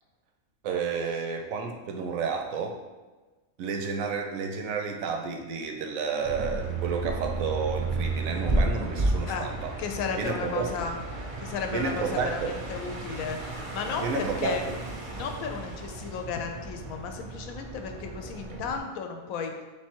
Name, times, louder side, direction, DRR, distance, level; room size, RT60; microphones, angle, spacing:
voice 1, 0.6-2.8 3.6-9.7 10.2-10.7 11.7-12.6 14.0-14.6, right 5 dB, 75° right, 3 dB, 1.0 m, -31 dB
sound 1, 6.2-18.8, right 2 dB, 45° right, 0.4 m, -33 dB
voice 2, 9.8-11.0 11.4-14.6 15.1-19.5, left 6 dB, 85° left, 4 dB, 1.0 m, -34 dB
3.4 x 3.2 x 4.4 m, 1.2 s
omnidirectional pair, 1.4 m